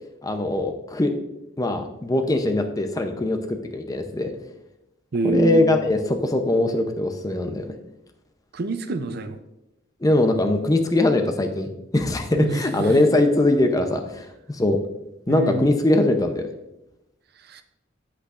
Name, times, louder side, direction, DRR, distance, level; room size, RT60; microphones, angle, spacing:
voice 1, 0.2-1.1 1.6-4.3 5.2-7.7 10.0-14.8 15.3-16.5, left 2 dB, 20° left, 5 dB, 0.6 m, -21 dB
voice 2, 5.1-5.7 8.5-9.4 12.3-13.1 15.3-15.7 17.5-17.6, right 2 dB, 55° right, 10 dB, 0.5 m, -26 dB
8.3 x 8.2 x 2.5 m, 0.90 s
head